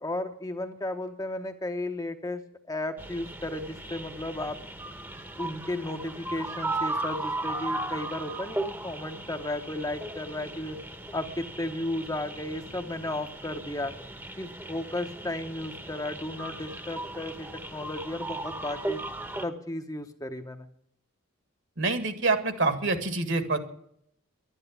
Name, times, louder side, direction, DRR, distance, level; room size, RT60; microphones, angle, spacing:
voice 1, 0.0-2.4 2.7-4.6 5.4-10.8 11.1-13.9 14.4-19.0 19.4-20.7, left 1 dB, 15° left, 6 dB, 0.9 m, -34 dB
sound 1, 3.0-19.4, right 2 dB, 10° right, 1.0 m, -37 dB
voice 2, 21.8-23.6, right 3 dB, 60° right, 9 dB, 1.9 m, -26 dB
12.0 x 10.0 x 9.6 m, 0.70 s
head